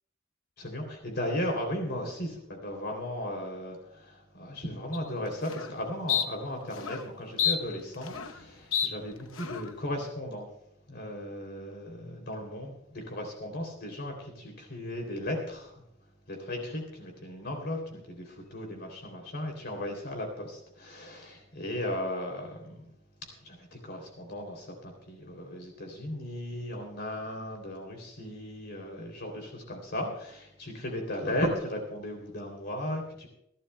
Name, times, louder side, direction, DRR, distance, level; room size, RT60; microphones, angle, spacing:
voice 1, 0.6-10.5 10.9-15.8 16.3-22.8 23.4-33.3, left 1 dB, 55° left, 2 dB, 3.0 m, -36 dB
sound 1, 4.9-5.0 5.4-5.7 6.1-6.3 6.8-7.0 7.4-8.4 8.7-8.9 9.4-9.7, left 8 dB, 90° left, 0.9 m, -29 dB
29.0 x 11.5 x 2.2 m, 0.77 s
head